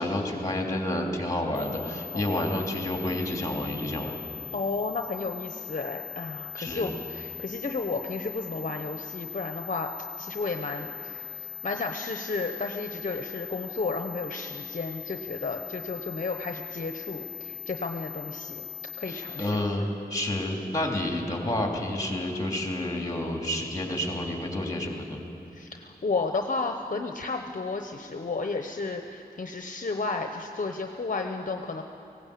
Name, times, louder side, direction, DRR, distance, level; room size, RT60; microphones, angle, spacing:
voice 1, 0.0-4.2 6.6-6.9 19.1-25.2, left 1 dB, 20° left, 1 dB, 3.0 m, -30 dB
sound 1, 1.5-19.5, left 7 dB, 10° right, 3.2 m, -40 dB
voice 2, 4.5-9.9 10.2-18.7 19.0-19.9 25.5-31.8, left 3 dB, 50° left, 5 dB, 0.9 m, -33 dB
18.5 x 17.0 x 8.5 m, 2.7 s
wide cardioid pair, 95°, 17 cm